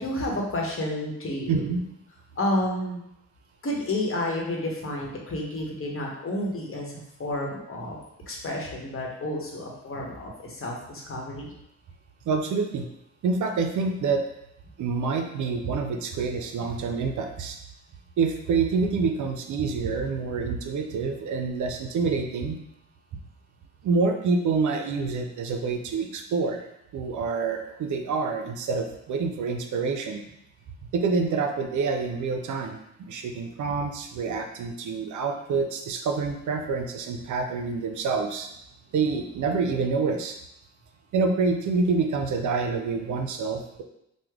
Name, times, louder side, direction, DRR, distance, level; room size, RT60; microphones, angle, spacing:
voice 1, 0.0-1.6 2.4-3.0 3.6-6.9 7.2-8.0 8.3-11.5, left 1 dB, 45° left, -1 dB, 1.0 m, -30 dB
voice 2, 1.5-1.8 12.3-12.9 13.2-14.2 14.8-17.6 18.2-22.6 23.8-26.7 26.9-30.2 30.9-38.5 38.9-40.4 41.1-43.8, right 4 dB, 75° right, 5 dB, 0.5 m, -27 dB
3.1 x 2.1 x 3.5 m, 0.81 s
cardioid pair, 55°, 31 cm